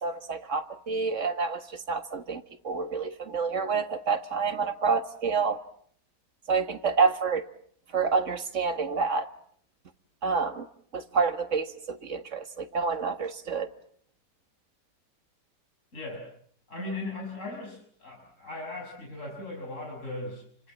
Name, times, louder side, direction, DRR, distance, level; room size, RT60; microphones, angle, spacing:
voice 1, 0.0-5.6 6.5-7.5 7.9-9.3 10.2-10.7 10.9-13.7, right 5 dB, 45° right, 1.8 m, -28 dB
voice 2, 15.9-16.3 16.7-20.7, left 2 dB, 45° left, 6.6 m, -38 dB
30.0 x 25.0 x 7.4 m
omnidirectional pair, 1.8 m